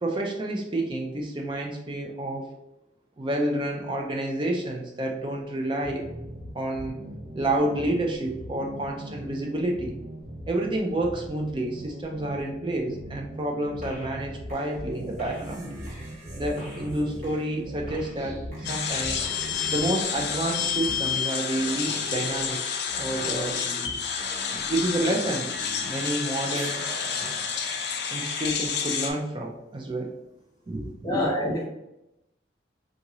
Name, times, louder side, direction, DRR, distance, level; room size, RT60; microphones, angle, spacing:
voice 1, 0.0-2.5 3.2-6.1 6.5-7.0 7.3-10.0 10.5-15.7 16.4-19.3 19.7-22.6 23.0-23.6 24.7-25.5 25.9-26.8 28.1-30.2 30.7-31.3, right 1 dB, 25° right, 1 dB, 0.4 m, -29 dB
sound 1, 5.8-20.3, right 1 dB, 80° right, 0.9 m, -40 dB
sound 2, 13.8-14.2 14.5-26.2 26.5-28.7, equal, 40° right, 1.0 m, -42 dB
sound 3, 18.6-29.1, left 7 dB, 60° left, 0.4 m, -29 dB
voice 2, 31.0-31.6, left 1 dB, 20° left, -1 dB, 0.7 m, -26 dB
3.6 x 2.5 x 2.9 m, 0.88 s
head